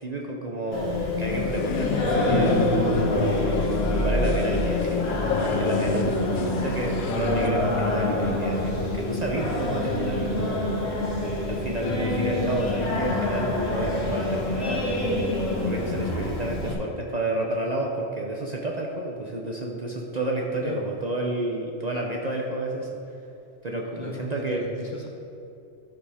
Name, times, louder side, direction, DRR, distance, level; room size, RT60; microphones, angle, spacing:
voice 1, 0.0-3.6 4.0-5.1 5.4-6.2 6.5-10.8 11.5-15.0 15.6-22.9 23.6-24.6, right 2 dB, 40° right, -1 dB, 0.7 m, -30 dB
Singing, 0.7-16.7, left 2 dB, 80° left, 1.7 m, -26 dB
sound 1, 1.3-7.5, left 5 dB, 60° left, 0.5 m, -30 dB
voice 2, 24.0-25.1, left 2 dB, 40° left, 1 dB, 0.9 m, -36 dB
12.0 x 5.3 x 4.9 m, 2.8 s
omnidirectional pair, 1.3 m